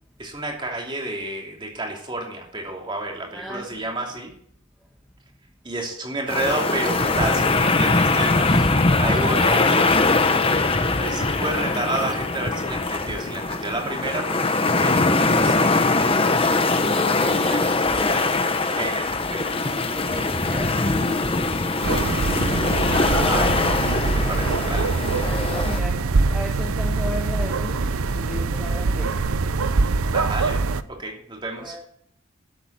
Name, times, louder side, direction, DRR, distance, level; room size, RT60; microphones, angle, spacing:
voice 1, 0.2-4.3 5.6-8.7 9.0-9.9 11.0-15.1 15.4-15.8 17.0-17.6 17.9-18.3 18.7-19.5 23.2-24.9 30.1-30.6 30.9-31.7, right 2 dB, 25° right, 2.9 m, -30 dB
voice 2, 3.3-3.8 9.1-10.6 16.0-18.4 19.7-22.5 25.2-29.2 31.6-31.8, left 1 dB, ahead, 1.4 m, -35 dB
sound 1, 6.3-25.8, left 3 dB, 25° left, 1.1 m, -22 dB
sound 2, 21.8-30.8, right 3 dB, 90° right, 0.7 m, -23 dB
12.5 x 8.0 x 8.1 m
head